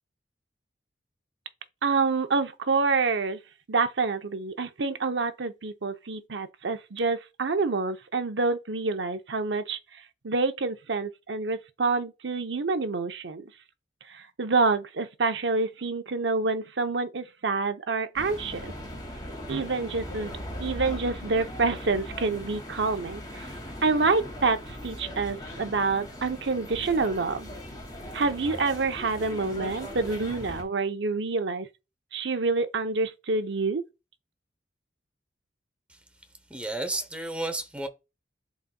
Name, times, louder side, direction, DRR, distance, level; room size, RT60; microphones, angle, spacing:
voice 1, 1.8-3.4 3.7-9.8 10.2-13.5 14.1-18.7 19.5-20.3 20.6-23.5 23.8-27.5 28.1-31.7 32.1-33.8, right 4 dB, 75° right, 0.8 m, -27 dB
sound 1, 18.2-30.6, equal, 20° left, 2.2 m, -39 dB
voice 2, 36.5-37.9, right 2 dB, 5° right, 0.9 m, -32 dB
11.0 x 4.1 x 2.3 m
head